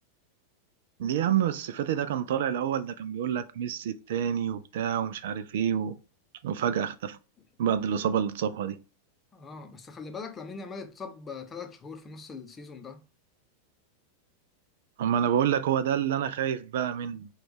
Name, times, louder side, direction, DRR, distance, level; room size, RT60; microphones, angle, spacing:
voice 1, 1.0-6.0 6.4-7.2 7.6-8.8 15.0-17.3, right 9 dB, 55° right, 0.3 m, -28 dB
voice 2, 9.3-13.0, left 4 dB, 20° left, 0.7 m, -41 dB
5.9 x 2.3 x 3.2 m
figure-of-eight pair, 90°, 0 cm